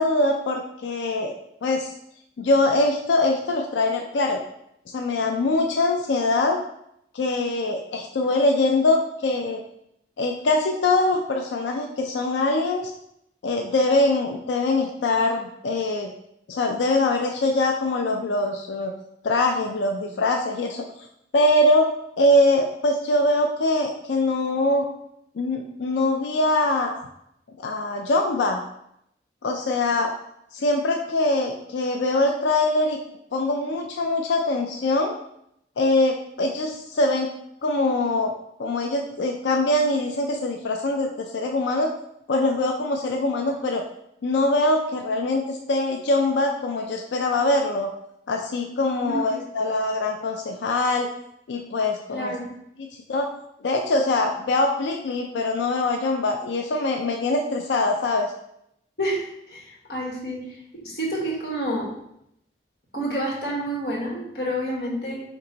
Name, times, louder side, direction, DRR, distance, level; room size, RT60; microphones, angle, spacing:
voice 1, 0.0-1.3 1.6-1.9 2.4-4.4 4.9-6.6 7.1-9.6 10.2-12.9 13.4-16.1 16.5-18.9 19.2-20.8 21.3-21.9 22.2-24.8 25.4-27.1 27.6-28.6 29.4-30.1 30.5-33.0 33.3-35.1 35.8-37.3 37.6-38.3 38.6-41.9 42.3-43.8 44.2-47.9 48.3-51.1 51.5-52.3 52.8-53.3 53.6-58.3, left 2 dB, 85° left, 3 dB, 0.4 m, -23 dB
voice 2, 49.1-49.4 52.1-52.6 59.0-61.9 62.9-65.2, right 1 dB, 65° left, -3 dB, 1.2 m, -29 dB
4.4 x 2.9 x 3.8 m, 0.76 s
head